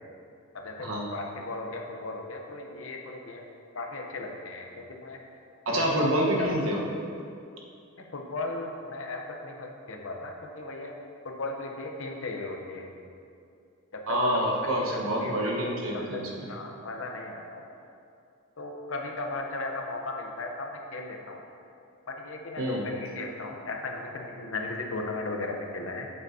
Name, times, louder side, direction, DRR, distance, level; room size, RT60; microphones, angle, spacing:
voice 1, 0.5-3.5 3.7-5.2 5.7-6.0 6.4-6.5 8.1-10.9 11.2-12.9 13.9-14.4 14.9-17.6 18.6-21.4 22.1-26.1, left 2 dB, 65° left, 2 dB, 0.8 m, -36 dB
voice 2, 5.6-6.8 14.1-16.5 22.6-22.9, equal, 75° right, -2 dB, 1.2 m, -27 dB
7.8 x 7.7 x 2.8 m, 2.5 s
head